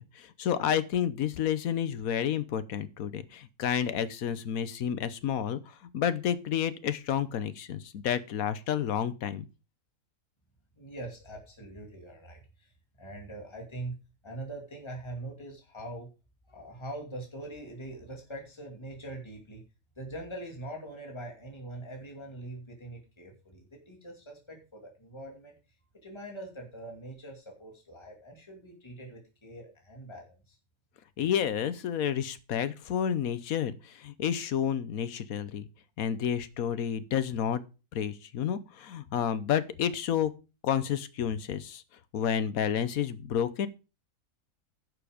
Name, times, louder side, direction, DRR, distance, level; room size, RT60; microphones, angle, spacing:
voice 1, 0.2-5.6 5.9-9.5 31.2-35.7 36.0-37.6 37.9-40.3 40.6-41.8 42.1-43.7, left 9 dB, 90° left, 14 dB, 1.3 m, -30 dB
voice 2, 10.8-14.0 14.2-16.1 16.5-19.6 20.0-25.6 26.0-30.6, right 1 dB, 20° left, 1 dB, 2.5 m, -43 dB
11.0 x 7.1 x 5.1 m, 0.31 s
omnidirectional pair, 1.4 m